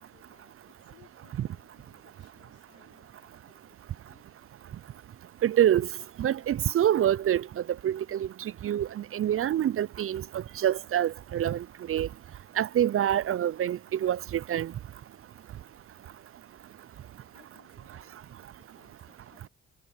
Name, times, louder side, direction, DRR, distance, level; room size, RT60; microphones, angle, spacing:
voice 1, 0.0-4.5 16.5-19.5, left 22 dB, 90° left, 5.3 m, -64 dB
voice 2, 5.4-5.9 6.2-7.4 7.8-8.3 8.6-11.6 11.9-12.1 12.6-14.7, right 11 dB, 45° right, 0.6 m, -26 dB
hypercardioid pair, 55°, 30 cm